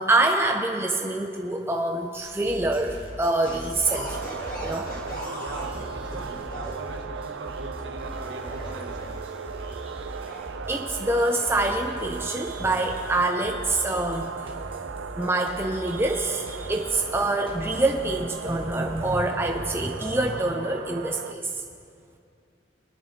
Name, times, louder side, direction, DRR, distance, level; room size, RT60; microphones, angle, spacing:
voice 1, 0.0-4.9 10.7-14.3 15.2-21.6, right 2 dB, 15° right, 2 dB, 0.5 m, -26 dB
sound 1, 2.1-19.9, equal, 30° right, 1.4 m, -41 dB
sound 2, 3.4-6.7 7.8-9.4 10.1-10.4, equal, 45° left, 1.7 m, -39 dB
sound 3, 3.9-21.3, right 6 dB, 90° right, 0.4 m, -37 dB
voice 2, 5.1-9.4, right 2 dB, 70° right, 2 dB, 1.4 m, -42 dB
21.5 x 10.5 x 2.8 m, 2.4 s
head